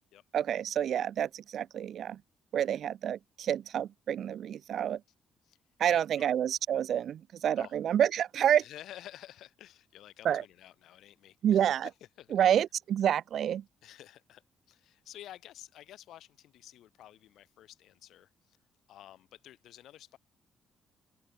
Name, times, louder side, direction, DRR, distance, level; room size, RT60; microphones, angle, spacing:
voice 1, 0.3-2.2 2.5-5.0 5.8-8.6 10.2-10.4 11.4-11.9 12.3-13.6, right 9 dB, 65° right, 0.3 m, -28 dB
voice 2, 5.9-6.3 7.6-7.7 8.6-12.6 13.8-14.4 14.7-18.6 18.9-20.2, left 12 dB, 80° left, 2.0 m, -51 dB
open air
cardioid pair, 90°, 0 cm